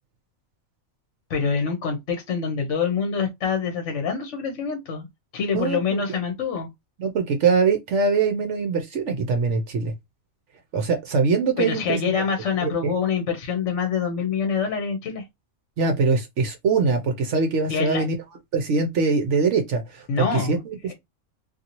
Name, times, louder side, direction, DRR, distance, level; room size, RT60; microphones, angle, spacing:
voice 1, 1.3-5.1 5.3-6.7 11.6-15.2 17.7-18.0 20.1-20.9, left 6 dB, 65° left, 1.0 m, -26 dB
voice 2, 5.5-6.0 7.0-9.9 10.7-12.0 12.6-12.9 15.8-18.1 18.5-20.9, right 4 dB, 65° right, 0.9 m, -23 dB
2.7 x 2.6 x 2.8 m
omnidirectional pair, 1.4 m